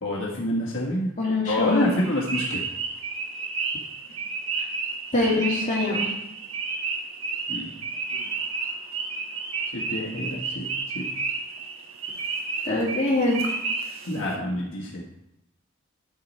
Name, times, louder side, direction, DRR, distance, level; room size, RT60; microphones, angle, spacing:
voice 1, 0.0-1.1 1.5-2.6 7.5-7.7 9.7-10.7 10.9-11.1 14.1-15.0, left 1 dB, 65° left, -3 dB, 1.5 m, -27 dB
voice 2, 1.2-1.9 5.1-6.1 12.6-13.4, left 2 dB, 35° left, -4 dB, 2.4 m, -23 dB
sound 1, 1.6-14.4, right 4 dB, 80° right, 1.4 m, -31 dB
9.9 x 6.5 x 4.2 m, 0.85 s
head